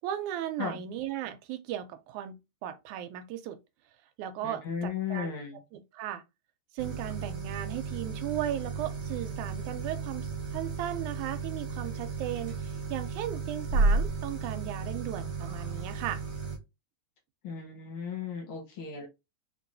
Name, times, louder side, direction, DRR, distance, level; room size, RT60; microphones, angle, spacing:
voice 1, 0.0-2.4 2.6-3.6 4.2-5.3 5.7-6.2 6.7-16.2, right 12 dB, 85° right, 2.0 m, -36 dB
voice 2, 4.4-5.6 17.4-19.1, left 6 dB, 75° left, 1.1 m, -35 dB
sound 1, 6.8-16.6, right 3 dB, 45° right, 1.1 m, -33 dB
4.6 x 3.0 x 2.5 m
omnidirectional pair, 3.4 m